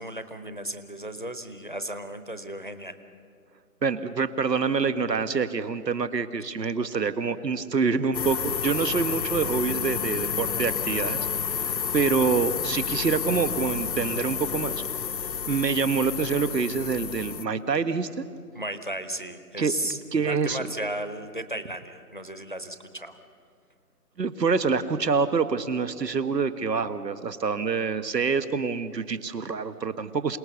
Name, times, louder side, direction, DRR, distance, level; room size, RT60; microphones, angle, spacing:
voice 1, 0.0-3.0 18.5-23.2, right 1 dB, 30° left, 10 dB, 0.7 m, -35 dB
voice 2, 3.8-14.7 15.5-18.2 19.6-19.7 20.1-20.6 24.2-30.4, right 5 dB, 85° right, 12 dB, 1.4 m, -26 dB
sound 1, 8.1-17.4, left 7 dB, 90° left, 0.9 m, -30 dB
27.5 x 18.5 x 6.8 m, 2.3 s
hypercardioid pair, 180°, 48 cm